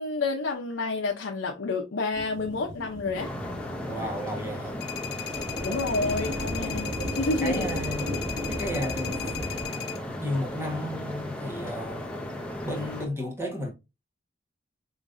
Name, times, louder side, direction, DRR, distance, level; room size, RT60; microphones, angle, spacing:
voice 1, 0.0-3.3 5.6-7.7, left 3 dB, 80° left, 0.6 m, -29 dB
sound 1, 2.1-9.7, equal, 75° right, 1.8 m, -36 dB
sound 2, 3.1-13.1, left 1 dB, 5° left, 0.6 m, -36 dB
voice 2, 3.8-4.8 5.7-5.8 7.4-8.1 8.4-9.2 10.2-12.1 12.6-13.7, equal, 15° right, 1.3 m, -33 dB
sound 3, 4.8-10.0, left 10 dB, 55° left, 0.9 m, -37 dB
5.1 x 3.1 x 2.5 m
head